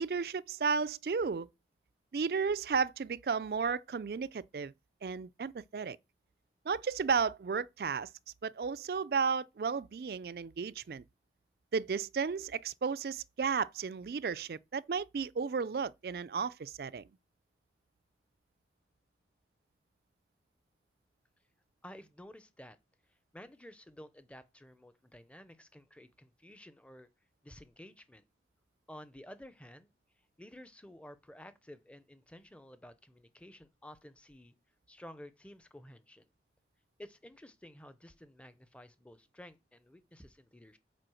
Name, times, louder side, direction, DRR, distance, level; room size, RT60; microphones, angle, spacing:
voice 1, 0.0-1.5 2.1-4.7 5.0-6.0 6.7-8.1 8.4-11.0 11.7-17.0, right 5 dB, 60° right, 0.4 m, -33 dB
voice 2, 21.8-22.8 23.3-27.1 27.4-28.2 28.9-29.9 30.4-34.5 34.9-36.3 37.0-40.8, left 1 dB, 5° left, 0.6 m, -52 dB
7.6 x 5.1 x 6.3 m
head